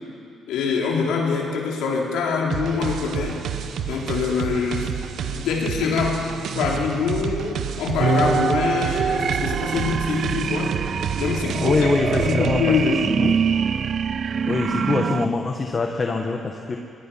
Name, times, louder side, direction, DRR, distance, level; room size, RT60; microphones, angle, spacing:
voice 1, 0.5-3.4 3.9-4.9 5.2-6.2 6.5-10.7 11.2-11.8 12.2-13.0 14.4-14.6, left 5 dB, 90° left, -1 dB, 3.7 m, -24 dB
sound 1, 2.5-12.6, right 8 dB, 70° right, 1.2 m, -30 dB
sound 2, 8.0-15.3, right 7 dB, 55° right, 0.5 m, -24 dB
voice 2, 11.5-13.4 14.5-16.8, left 3 dB, 35° left, 3 dB, 1.4 m, -24 dB
21.5 x 21.5 x 5.8 m, 2.5 s
cardioid pair, 90°, 0 cm